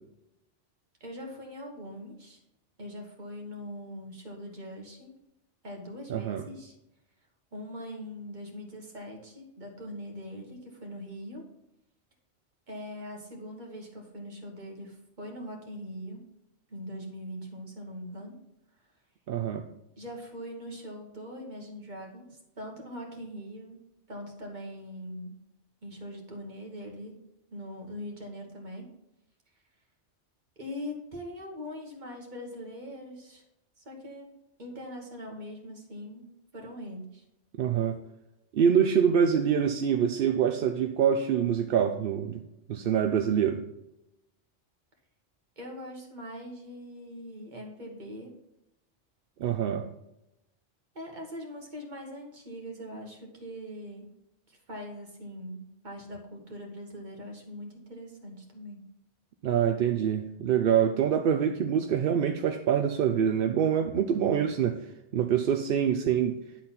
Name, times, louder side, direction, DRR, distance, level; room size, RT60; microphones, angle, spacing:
voice 1, 1.0-2.4 2.8-5.1 5.6-6.7 7.5-11.4 12.7-16.2 16.7-18.4 20.0-23.8 24.1-25.3 25.8-27.2 27.5-28.9 30.6-33.4 33.8-34.3 34.6-36.3 36.5-37.2 45.6-48.3 50.9-54.1 54.5-58.8, equal, 40° right, 1 dB, 1.7 m, -42 dB
voice 2, 6.1-6.4 19.3-19.6 37.6-37.9 38.5-42.4 42.7-43.6 49.4-49.8 59.4-64.8 65.1-66.4, right 8 dB, 60° right, 6 dB, 0.7 m, -25 dB
10.0 x 4.1 x 5.8 m, 0.87 s
omnidirectional pair, 1.2 m